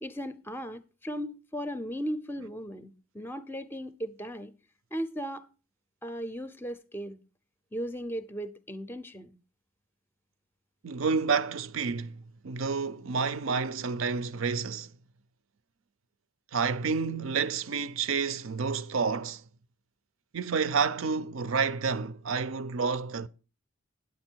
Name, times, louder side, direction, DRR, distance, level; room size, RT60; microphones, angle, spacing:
voice 1, 0.0-4.5 4.9-5.5 6.0-7.2 7.7-9.3, equal, 10° left, 0.5 m, -37 dB
voice 2, 10.8-14.9 16.5-19.4 20.3-23.3, right 5 dB, 65° right, 0.5 m, -29 dB
9.4 x 8.3 x 4.5 m
head